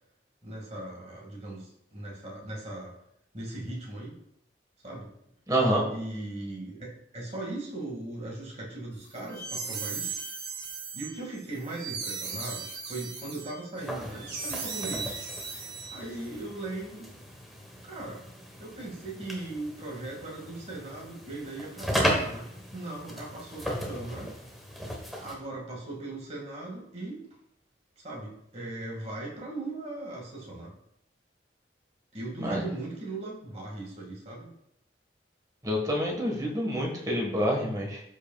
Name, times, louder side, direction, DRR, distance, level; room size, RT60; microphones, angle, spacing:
voice 1, 0.4-3.0 3.3-4.2 4.8-5.1 5.9-10.2 10.9-15.2 15.9-17.1 17.8-18.3 18.6-24.4 25.2-27.3 28.0-30.7 32.1-34.5, right 2 dB, 35° right, -2 dB, 2.2 m, -38 dB
voice 2, 5.5-5.9 32.4-32.6 35.6-38.0, equal, 20° right, -1 dB, 1.7 m, -27 dB
sound 1, 9.1-16.3, right 5 dB, 80° right, 2.3 m, -37 dB
sound 2, 13.8-25.3, equal, ahead, 1.3 m, -36 dB
13.0 x 5.5 x 2.4 m, 0.74 s
head